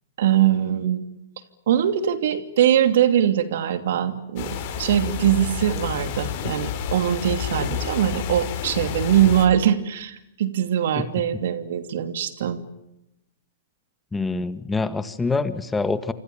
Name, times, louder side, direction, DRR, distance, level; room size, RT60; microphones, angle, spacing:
voice 1, 0.2-1.1 1.7-12.6, right 10 dB, 65° right, 10 dB, 2.9 m, -22 dB
sound 1, 4.4-9.5, left 9 dB, 50° left, 6.4 m, -30 dB
voice 2, 14.1-16.1, left 3 dB, 10° left, 12 dB, 1.7 m, -25 dB
28.0 x 26.0 x 7.2 m, 0.87 s
hypercardioid pair, 115°, 0 cm